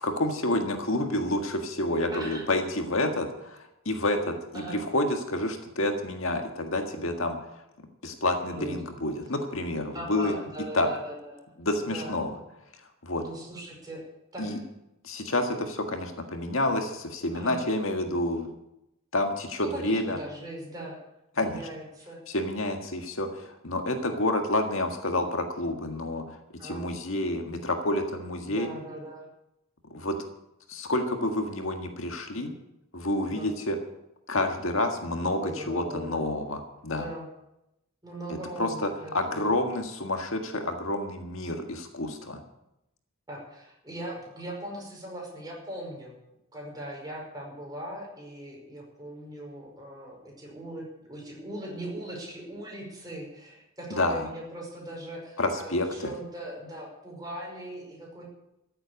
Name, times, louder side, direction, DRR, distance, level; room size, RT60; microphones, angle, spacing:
voice 1, 0.0-7.4 8.0-10.3 10.7-10.9 11.6-12.4 13.0-13.2 14.4-14.6 15.0-18.5 19.1-20.2 21.4-21.6 22.3-26.2 26.6-28.7 29.9-30.2 30.7-32.5 32.9-33.8 34.3-37.1 38.6-42.4 53.9-54.3 55.4-56.1, left 1 dB, 70° left, 5 dB, 1.8 m, -29 dB
voice 2, 2.1-2.4 4.5-4.8 8.0-8.2 8.5-8.8 9.9-11.5 11.9-12.1 13.1-14.0 14.3-14.6 17.3-17.6 19.7-21.0 21.4-22.2 26.6-26.9 28.4-29.3 33.3-33.5 35.4-36.2 36.9-37.3 38.0-39.5 43.3-46.2 46.5-58.2, right 1 dB, 20° right, -2 dB, 5.4 m, -40 dB
14.5 x 7.9 x 9.6 m, 0.87 s
head